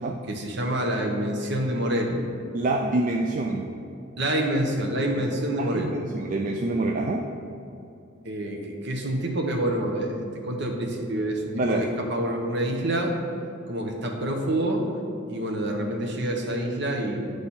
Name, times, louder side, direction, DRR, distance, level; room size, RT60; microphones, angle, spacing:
voice 1, 0.3-2.2 4.2-5.9 8.2-13.1 13.7-14.9 15.3-17.3, right 1 dB, 60° right, 2 dB, 0.9 m, -27 dB
voice 2, 2.5-3.7 5.6-7.3 11.5-11.9, right 2 dB, 40° right, 1 dB, 0.3 m, -26 dB
9.6 x 3.3 x 4.2 m, 2.7 s
head